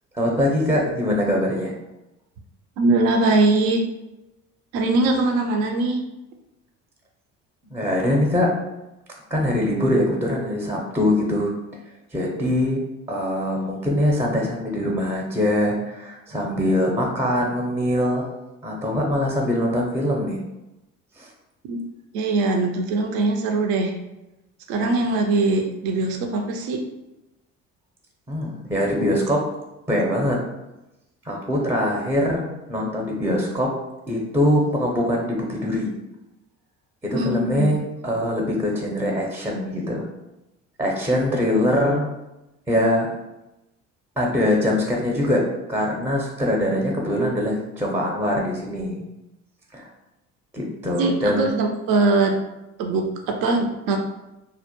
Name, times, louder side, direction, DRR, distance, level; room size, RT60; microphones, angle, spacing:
voice 1, 0.1-1.7 7.7-8.5 9.3-11.5 12.1-12.8 13.1-18.2 18.6-20.4 21.2-21.3 28.3-29.5 29.9-30.4 31.3-33.7 34.1-35.9 37.0-40.1 40.8-42.1 42.7-43.1 44.2-45.4 45.7-49.0 49.7-49.9 50.5-51.5, left 1 dB, 5° right, -1 dB, 0.5 m, -23 dB
voice 2, 2.8-3.8 4.7-6.0 21.6-21.8 22.1-23.9 24.7-26.8 37.1-37.7 51.0-52.4 52.8-54.0, right 2 dB, 60° right, 3 dB, 0.5 m, -21 dB
2.2 x 2.0 x 2.9 m, 0.97 s
hypercardioid pair, 55°, 40 cm